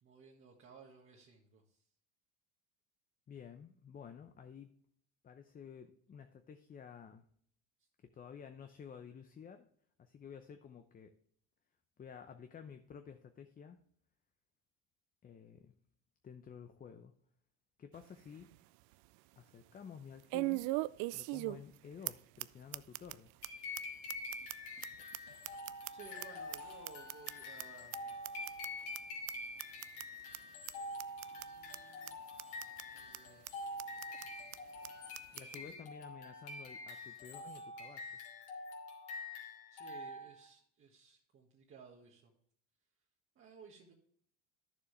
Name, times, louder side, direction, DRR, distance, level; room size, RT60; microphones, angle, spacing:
voice 1, 0.0-1.8 25.9-28.2 31.2-32.2 32.9-33.6 35.5-35.8 39.7-42.3 43.3-43.9, right 5 dB, 40° right, -2 dB, 1.7 m, -58 dB
voice 2, 3.3-4.7 5.2-7.3 8.1-9.7 10.0-11.1 12.0-13.8 15.2-15.7 16.2-17.1 17.8-18.5 19.4-20.6 21.1-23.3 35.3-38.1, left 7 dB, 25° left, 7 dB, 0.7 m, -52 dB
sound 1, 17.9-18.0 18.5-18.6 20.3-21.8 22.1-22.2 22.4-22.5 22.7-23.1 23.4-23.5 23.8-23.9 24.1-26.3 26.5-27.6 27.9-28.0 28.2-28.7 28.9-29.0 29.3-29.4 29.6-30.0 30.3-30.4 30.7-30.8 31.0-31.5 31.7-31.8 32.1-32.2 32.4-32.8 33.1-33.2 33.5-33.6 33.8-34.3 34.5-34.6 34.8-34.9 35.1-35.6, right 20 dB, 65° right, 0.5 m, -39 dB
sound 2, 23.4-40.5, left 2 dB, 65° left, 3.0 m, -46 dB
10.5 x 7.1 x 3.3 m, 0.64 s
supercardioid pair, 110°, 33 cm